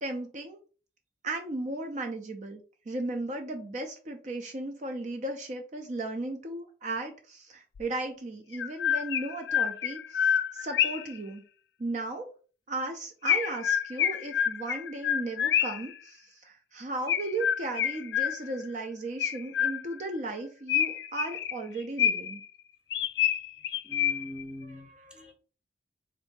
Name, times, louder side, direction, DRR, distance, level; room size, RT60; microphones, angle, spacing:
voice 1, 0.0-0.6 1.2-2.6 2.9-11.4 11.8-12.3 12.7-22.4 24.7-25.3, right 2 dB, 40° right, 4 dB, 0.5 m, -36 dB
Chirp tweet, 7.8-7.9 8.5-11.2 13.3-15.9 17.1-18.7 19.2-20.1 20.7-22.4 22.9-24.4, left 9 dB, 70° left, 0.3 m, -28 dB
voice 2, 23.6-25.3, equal, 5° right, 3 dB, 0.8 m, -43 dB
3.7 x 2.6 x 3.7 m, 0.38 s
head